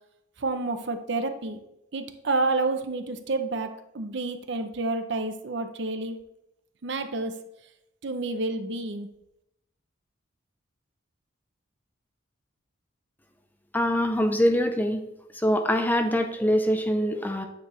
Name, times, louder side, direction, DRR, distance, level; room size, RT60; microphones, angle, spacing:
voice 1, 0.4-1.6 1.9-6.2 6.8-7.3 8.0-9.1, right 3 dB, 55° right, 8 dB, 0.6 m, -29 dB
voice 2, 13.7-15.0 15.3-17.5, equal, 10° left, 6 dB, 0.5 m, -24 dB
9.3 x 4.7 x 3.2 m, 0.83 s
head